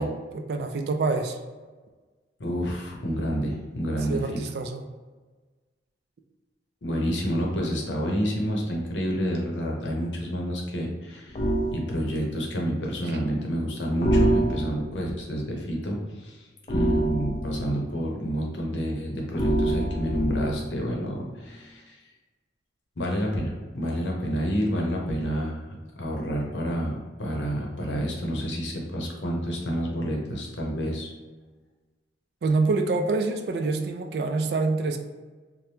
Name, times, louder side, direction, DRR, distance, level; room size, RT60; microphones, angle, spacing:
voice 1, 0.0-1.4 4.1-4.8 13.1-13.2 32.4-35.0, right 3 dB, 65° right, 5 dB, 0.3 m, -26 dB
voice 2, 2.4-4.2 6.8-11.4 11.7-22.0 23.0-31.1, equal, 90° left, -1 dB, 0.7 m, -29 dB
sound 1, 11.3-11.8 14.0-15.0 16.7-17.8 19.3-20.7, right 1 dB, 40° left, 0.3 m, -25 dB
2.8 x 2.2 x 3.2 m, 1.3 s
head